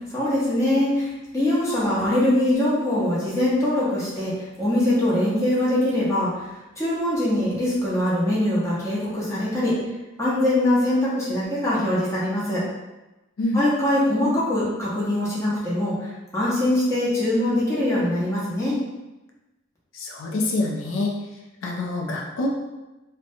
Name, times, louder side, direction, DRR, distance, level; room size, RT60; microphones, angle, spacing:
voice 1, 0.1-4.3 4.6-6.4 6.8-9.8 10.2-12.6 13.5-18.8, left 1 dB, 15° left, -8 dB, 0.8 m, -22 dB
voice 2, 19.9-21.1 21.6-22.5, left 2 dB, 80° left, 0 dB, 0.4 m, -25 dB
2.7 x 2.1 x 2.6 m, 1.1 s
head